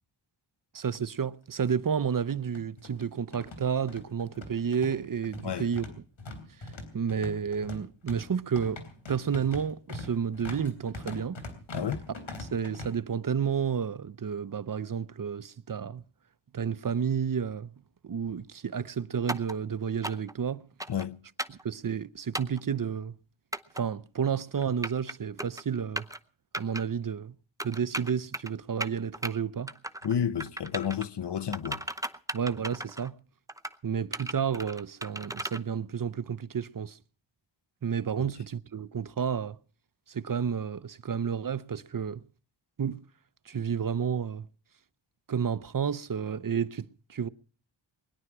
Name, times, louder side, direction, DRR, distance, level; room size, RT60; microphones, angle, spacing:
voice 1, 0.7-5.8 6.6-6.7 6.9-8.8 9.1-11.4 12.4-16.0 16.5-17.7 18.0-20.6 21.5-23.2 23.8-26.1 26.6-27.4 27.6-29.7 32.3-33.1 33.8-37.0 37.8-39.6 40.1-42.2 42.8-43.0 43.5-44.5 45.3-47.3, right 7 dB, 45° right, 0.7 m, -31 dB
sound 1, 0.8-0.9 1.2-1.3 2.1-12.9, left 2 dB, 80° left, 3.6 m, -42 dB
sound 2, 19.3-19.5 20.0-20.3 20.8-21.1 21.4-21.6 22.3-22.6 23.5-23.8 24.6-25.1 25.4-25.6 26.0-26.2 26.5-26.8 27.6-28.5 28.8-29.3 29.7-30.1 30.4-31.1 31.5-33.1 33.5-33.8 34.1-35.6, right 1 dB, 5° right, 0.7 m, -36 dB
voice 2, 30.0-31.8, left 8 dB, 60° left, 0.9 m, -31 dB
21.0 x 11.0 x 6.0 m
wide cardioid pair, 80°, 46 cm